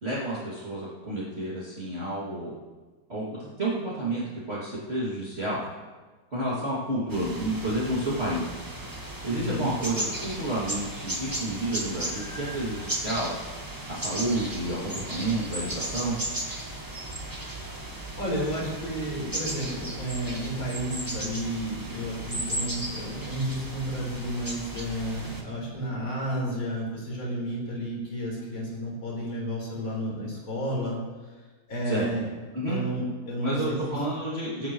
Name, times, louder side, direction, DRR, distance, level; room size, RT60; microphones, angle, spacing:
voice 1, 0.0-2.5 3.1-4.2 4.5-5.6 6.3-8.5 9.2-13.4 13.9-16.2 31.9-32.1 32.5-32.8 33.4-34.7, right 1 dB, 30° right, -8 dB, 2.8 m, -30 dB
sound 1, 7.1-25.4, right 1 dB, 10° right, 1.5 m, -35 dB
voice 2, 9.3-9.7 18.2-31.0 31.7-32.3 32.6-34.0, equal, 75° left, -3 dB, 5.0 m, -31 dB
20.5 x 11.5 x 3.2 m, 1.3 s
omnidirectional pair, 2.2 m